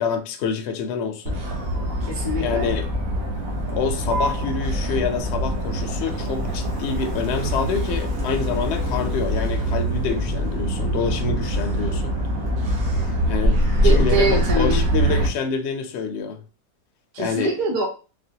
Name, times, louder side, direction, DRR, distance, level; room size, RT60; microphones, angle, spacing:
voice 1, 0.0-1.4 2.4-2.9 3.7-12.1 13.3-13.6 13.8-16.4 17.2-17.5, left 6 dB, 65° left, 0.6 m, -27 dB
Motor vehicle (road), 1.3-15.3, equal, 60° right, 1.2 m, -23 dB
voice 2, 2.0-2.7 13.8-14.8 17.1-17.9, right 2 dB, 25° right, 0.7 m, -24 dB
4.2 x 2.1 x 2.7 m
omnidirectional pair, 1.7 m